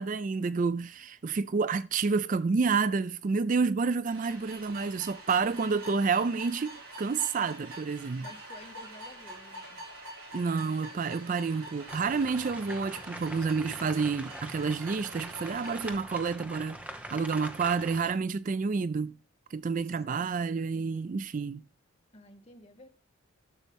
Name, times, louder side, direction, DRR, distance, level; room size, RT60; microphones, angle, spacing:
voice 1, 0.0-6.7 7.0-8.3 10.3-16.8 17.1-19.1 19.5-21.6, right 4 dB, 40° right, 0.3 m, -29 dB
sound 1, 4.1-15.9, right 1 dB, 75° right, 6.3 m, -46 dB
voice 2, 8.2-9.8 22.1-22.9, left 1 dB, 30° left, 1.2 m, -52 dB
sound 2, 11.9-18.1, right 1 dB, 5° right, 0.9 m, -43 dB
11.5 x 7.1 x 3.5 m
head